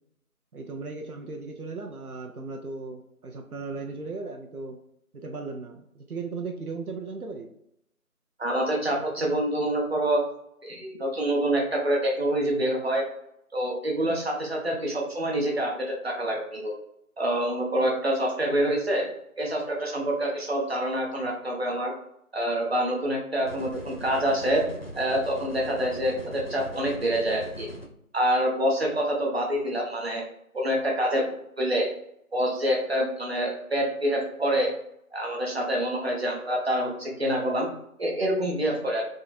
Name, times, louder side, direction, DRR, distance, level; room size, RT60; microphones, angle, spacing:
voice 1, 0.5-4.8 5.1-7.5, right 4 dB, 75° right, 3 dB, 0.7 m, -37 dB
voice 2, 8.4-10.2 10.6-13.1 13.5-16.7 17.2-19.1 19.4-21.9 22.3-24.6 25.0-27.7 28.1-30.2 30.5-31.3 31.6-31.9 32.3-34.7 35.1-37.7 38.0-39.0, right 1 dB, 45° right, -1 dB, 0.9 m, -26 dB
sound 1, 23.5-27.9, equal, 45° left, 0.5 m, -40 dB
3.7 x 2.6 x 4.1 m, 0.76 s
figure-of-eight pair, 170°, 44 cm